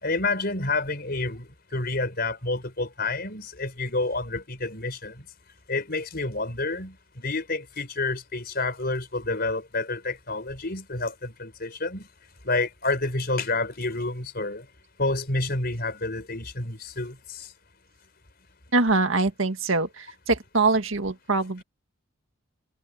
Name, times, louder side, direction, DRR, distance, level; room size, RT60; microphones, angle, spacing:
voice 1, 0.0-5.1 5.7-12.1 12.4-14.6 15.0-17.5, left 3 dB, 50° left, 4.8 m, -29 dB
voice 2, 18.7-21.6, right 3 dB, 75° right, 1.8 m, -23 dB
head